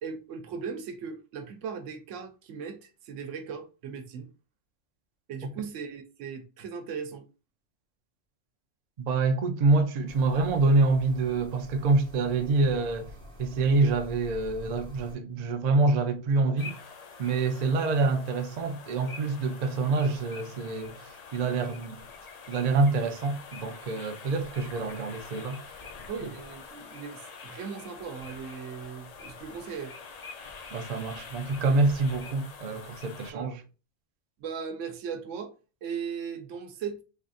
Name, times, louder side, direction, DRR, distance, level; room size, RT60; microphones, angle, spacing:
voice 1, 0.0-4.3 5.3-7.3 26.1-29.9 33.3-33.5 34.4-35.5 35.8-37.0, right 6 dB, 80° right, 0.9 m, -38 dB
voice 2, 9.0-13.1 13.4-16.8 17.2-21.0 21.3-22.0 22.5-25.7 30.7-33.6, right 3 dB, 60° right, 0.4 m, -26 dB
sound 1, 10.1-15.2, left 1 dB, 5° left, 1.1 m, -47 dB
sound 2, 16.6-33.3, left 5 dB, 60° left, 0.4 m, -46 dB
3.4 x 2.5 x 2.4 m
omnidirectional pair, 1.2 m